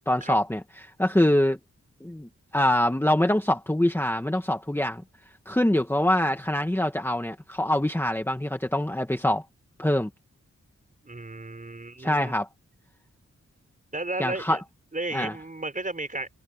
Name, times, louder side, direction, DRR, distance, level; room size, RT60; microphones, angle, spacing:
voice 1, 0.1-1.6 2.0-5.0 5.5-9.4 9.8-10.1 12.0-12.5 14.2-14.6 15.1-15.3, left 1 dB, 10° left, 1.7 m, -24 dB
voice 2, 11.0-12.3 13.9-14.6 14.9-16.3, right 2 dB, 25° right, 5.2 m, -33 dB
wide cardioid pair, 120°, 29 cm